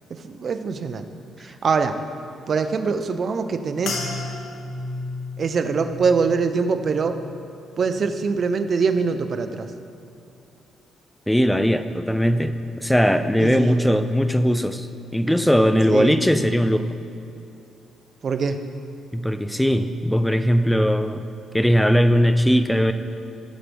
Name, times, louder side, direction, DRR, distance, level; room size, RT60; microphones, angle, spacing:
voice 1, 0.1-1.1 1.4-2.0 2.5-4.0 5.4-7.2 7.8-9.7 13.4-13.8 15.9-16.1 18.2-18.6, right 5 dB, 50° right, 8 dB, 0.7 m, -23 dB
sound 1, 3.8-8.4 8.7-9.3 9.9-10.2, left 3 dB, 80° left, 1.5 m, -35 dB
voice 2, 11.3-12.5 12.8-14.9 15.1-16.9 19.1-21.2 21.5-22.9, equal, 5° left, 9 dB, 0.6 m, -19 dB
17.0 x 7.5 x 3.5 m, 2.6 s
cardioid pair, 90°, 0 cm